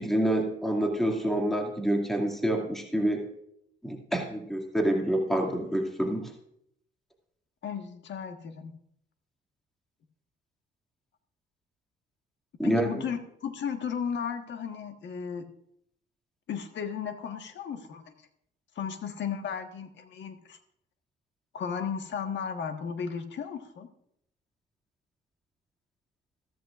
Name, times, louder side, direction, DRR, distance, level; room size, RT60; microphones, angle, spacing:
voice 1, 0.0-3.2 3.8-6.3 12.6-12.9, right 1 dB, ahead, 2 dB, 2.3 m, -27 dB
voice 2, 7.6-8.7 12.6-15.4 16.5-18.3 18.7-20.6 21.5-23.9, left 7 dB, 65° left, 6 dB, 1.5 m, -35 dB
14.5 x 14.0 x 2.5 m, 0.73 s
cardioid pair, 90°, 20 cm